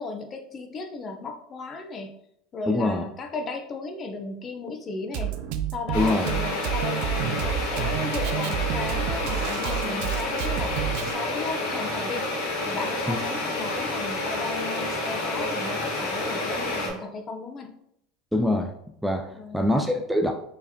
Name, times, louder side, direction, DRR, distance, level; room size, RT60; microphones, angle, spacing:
voice 1, 0.0-2.2 2.5-5.4 5.7-12.3 12.7-17.7 19.3-19.7, left 3 dB, 35° left, 5 dB, 0.7 m, -35 dB
voice 2, 2.7-3.0 5.9-6.3 13.1-13.2 18.3-18.7 19.0-20.3, left 1 dB, ahead, 3 dB, 0.4 m, -24 dB
Drum kit, 5.1-11.1, right 10 dB, 65° right, 0.4 m, -29 dB
sound 1, 5.9-16.9, left 2 dB, 80° left, 1.6 m, -29 dB
4.7 x 3.2 x 2.8 m, 0.74 s
supercardioid pair, 105°, 0 cm